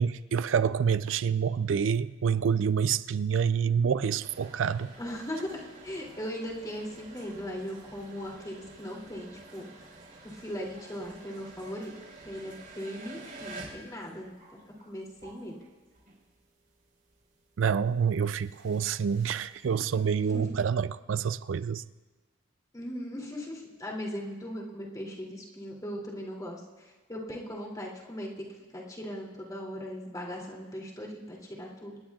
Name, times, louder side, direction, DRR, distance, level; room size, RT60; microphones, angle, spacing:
voice 1, 0.0-4.9 17.6-21.8, right 7 dB, 80° right, 0.4 m, -27 dB
sound 1, 4.2-16.5 16.8-20.1, right 2 dB, 45° right, 4.5 m, -50 dB
voice 2, 5.0-9.7 10.2-11.9 12.2-14.4 14.8-15.6 20.2-20.6 22.7-28.5 28.7-32.0, equal, 20° left, 2.7 m, -39 dB
27.0 x 19.0 x 2.4 m
head